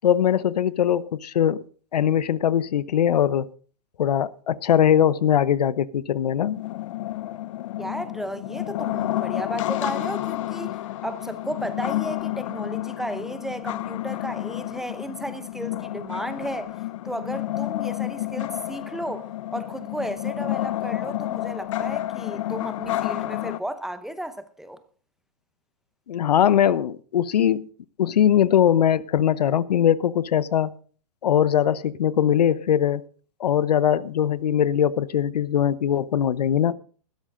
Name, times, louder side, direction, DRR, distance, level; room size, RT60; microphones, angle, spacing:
voice 1, 0.0-1.6 1.9-3.5 4.0-6.6 26.1-27.6 28.0-30.7 31.2-33.0 33.4-36.7, left 9 dB, 85° left, 0.8 m, -21 dB
sound 1, 6.4-23.6, left 15 dB, 55° left, 0.8 m, -30 dB
voice 2, 7.8-10.8 11.0-24.8, right 1 dB, ahead, 0.7 m, -34 dB
15.5 x 13.0 x 3.8 m
hypercardioid pair, 145°, 20 cm